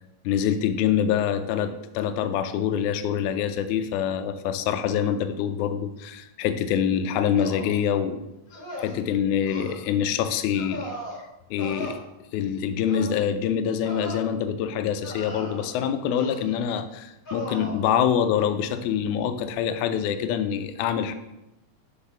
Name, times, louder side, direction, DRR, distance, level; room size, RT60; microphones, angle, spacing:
voice 1, 0.3-8.2 8.8-10.9 11.5-12.0 12.3-21.1, left 8 dB, 80° left, 9 dB, 1.8 m, -25 dB
sound 1, 7.4-7.8 8.5-9.0 9.5-9.7 10.5-11.2 11.6-11.9 12.8-13.1 13.8-14.2 15.0-15.7 16.2-16.6 17.2-17.8, left 1 dB, 45° left, 1.1 m, -37 dB
5.7 x 3.6 x 5.8 m, 0.91 s
omnidirectional pair, 3.8 m